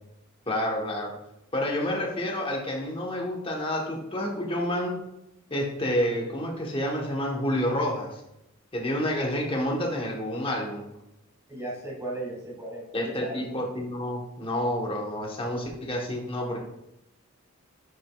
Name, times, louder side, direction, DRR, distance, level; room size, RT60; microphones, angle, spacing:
voice 1, 0.5-1.1 1.5-5.0 5.5-8.2 8.7-10.8 12.9-16.6, left 1 dB, 25° left, -1 dB, 1.0 m, -29 dB
voice 2, 11.5-13.6, right 1 dB, 15° right, -4 dB, 1.8 m, -36 dB
9.3 x 5.0 x 2.3 m, 0.85 s
head